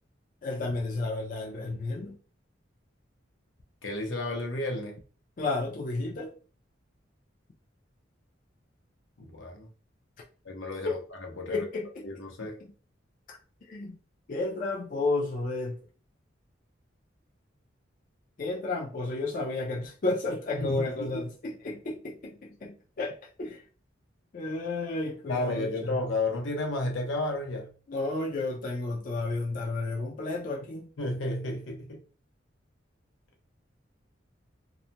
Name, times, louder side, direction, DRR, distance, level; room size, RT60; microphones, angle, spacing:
voice 1, 0.4-2.2 5.4-6.3 11.5-12.1 13.3-13.4 13.7-14.0 14.3-15.8 18.4-23.6 24.3-26.0 27.9-30.9, left 2 dB, 45° left, 0.4 m, -32 dB
voice 2, 3.8-5.0 9.2-9.7 10.4-11.6 12.0-12.6 20.5-21.3 25.3-27.7 31.0-32.0, left 2 dB, 85° left, 0.7 m, -32 dB
2.3 x 2.2 x 2.8 m
head